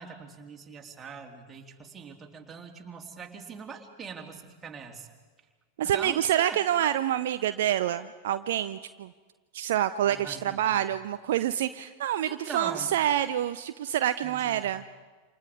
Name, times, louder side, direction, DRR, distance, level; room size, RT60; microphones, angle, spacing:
voice 1, 0.0-5.1 5.8-6.6 10.0-10.9 12.2-12.9 14.2-14.7, right 5 dB, 20° right, 1 dB, 3.3 m, -42 dB
voice 2, 5.8-9.1 9.5-14.8, right 11 dB, 55° right, 11 dB, 0.6 m, -27 dB
28.5 x 28.0 x 4.9 m, 1.4 s
figure-of-eight pair, 90°, 0 cm